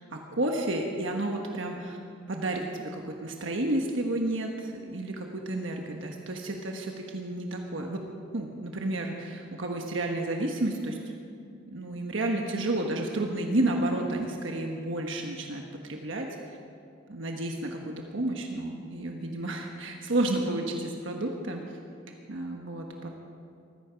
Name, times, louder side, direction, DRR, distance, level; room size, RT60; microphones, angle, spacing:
voice 1, 0.1-2.0 2.3-8.0 8.3-11.0 11.5-16.3 17.1-21.6 22.3-23.1, right 1 dB, 65° right, 2 dB, 1.3 m, -31 dB
19.0 x 14.5 x 5.2 m, 2.5 s
head